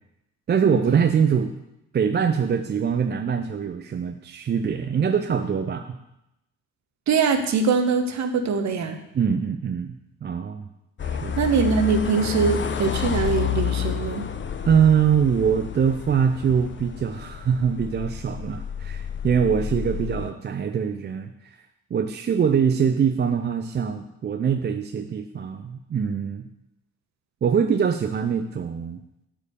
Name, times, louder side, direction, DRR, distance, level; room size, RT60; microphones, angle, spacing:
voice 1, 0.5-1.5 1.9-6.0 9.1-10.0 10.2-10.6 11.0-11.4 14.6-21.6 21.9-26.5 27.4-29.0, right 7 dB, 25° right, 7 dB, 0.6 m, -23 dB
voice 2, 7.1-9.0 11.3-14.2, right 5 dB, 40° right, 7 dB, 1.2 m, -22 dB
sound 1, 11.0-20.3, left 7 dB, 30° left, 0.7 m, -30 dB
8.5 x 5.0 x 6.8 m, 0.87 s
figure-of-eight pair, 40°, 41 cm